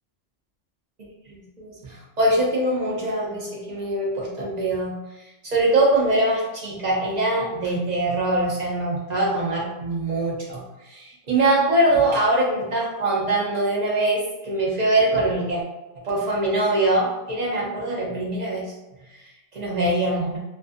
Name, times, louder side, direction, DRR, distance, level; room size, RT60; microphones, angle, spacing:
voice 1, 1.3-15.6 16.0-18.7 19.1-20.4, right 1 dB, 80° right, -4 dB, 0.3 m, -23 dB
2.4 x 2.4 x 2.4 m, 1.0 s
omnidirectional pair, 1.3 m